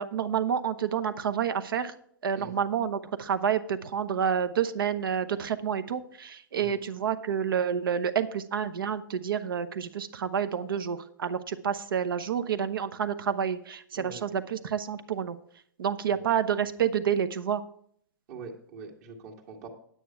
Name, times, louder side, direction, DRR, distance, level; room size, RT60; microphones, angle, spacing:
voice 1, 0.0-1.9 2.2-15.4 15.8-17.6, right 8 dB, 85° right, 12 dB, 0.9 m, -29 dB
voice 2, 18.3-19.7, right 4 dB, 50° right, -1 dB, 1.9 m, -43 dB
9.3 x 9.2 x 4.6 m, 0.63 s
hypercardioid pair, 140°, 11 cm